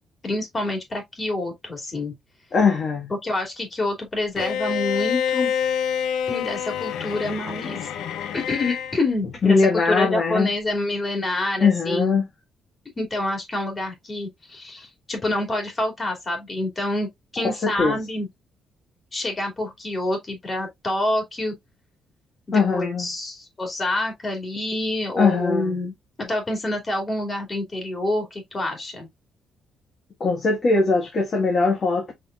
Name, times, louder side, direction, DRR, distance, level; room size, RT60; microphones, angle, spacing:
voice 1, 0.2-2.1 3.2-5.5 6.3-7.8 8.3-12.2 13.0-18.3 19.1-21.5 22.5-29.1, left 2 dB, 30° left, 2.7 m, -27 dB
voice 2, 2.5-3.1 9.4-10.5 11.6-12.3 17.6-18.0 22.5-23.1 25.2-25.8 30.2-32.1, left 4 dB, 45° left, 1.7 m, -20 dB
Bowed string instrument, 4.4-9.0, left 8 dB, 85° left, 0.7 m, -27 dB
5.5 x 4.0 x 2.4 m
cardioid pair, 90°, 0 cm